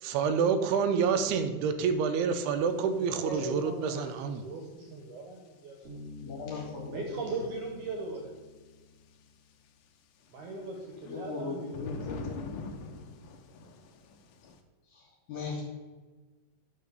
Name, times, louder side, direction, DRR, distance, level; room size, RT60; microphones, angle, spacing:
voice 1, 0.0-4.4, right 6 dB, 85° right, 8 dB, 2.7 m, -28 dB
sound 1, 2.8-2.9 3.6-3.7 3.8-4.1 6.3-6.4 7.5-7.7 10.2-14.6, left 4 dB, 85° left, 1.8 m, -43 dB
voice 2, 2.9-6.1 6.4-8.3 10.3-12.2, right 3 dB, 65° right, 1 dB, 2.1 m, -39 dB
Bass guitar, 5.8-9.5, left 3 dB, 35° right, 1.0 m, -48 dB
voice 3, 6.2-7.0 11.0-12.4 14.9-15.0 15.3-15.6, left 4 dB, 55° left, -3 dB, 2.9 m, -38 dB
10.0 x 3.8 x 6.7 m, 1.3 s
omnidirectional pair, 4.5 m